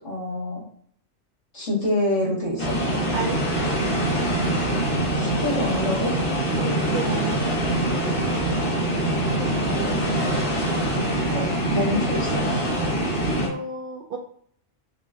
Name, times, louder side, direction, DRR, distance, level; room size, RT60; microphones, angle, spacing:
voice 1, 0.0-0.6 1.5-2.8 5.2-6.3 6.9-7.0 9.4-10.3 11.3-12.4, left 1 dB, 65° left, -5 dB, 2.3 m, -27 dB
sound 1, 2.6-13.5, right 1 dB, 45° left, 1.4 m, -24 dB
voice 2, 6.6-7.4 13.4-14.2, right 4 dB, 55° right, 0 dB, 0.6 m, -31 dB
5.0 x 2.3 x 3.6 m, 0.62 s
omnidirectional pair, 1.3 m